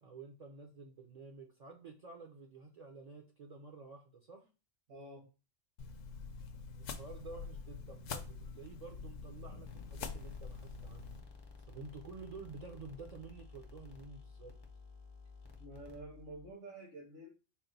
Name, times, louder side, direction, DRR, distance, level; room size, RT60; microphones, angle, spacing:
voice 1, 0.0-4.4 6.8-11.1 11.7-14.5, right 4 dB, 50° right, 2 dB, 0.5 m, -51 dB
voice 2, 4.9-5.2 15.6-17.3, right 1 dB, 80° right, -4 dB, 1.8 m, -49 dB
sound 1, 5.8-11.2, left 5 dB, 80° left, 0.9 m, -46 dB
sound 2, 9.7-16.5, left 4 dB, 30° left, 0.4 m, -54 dB
4.2 x 2.2 x 3.9 m, 0.31 s
omnidirectional pair, 1.3 m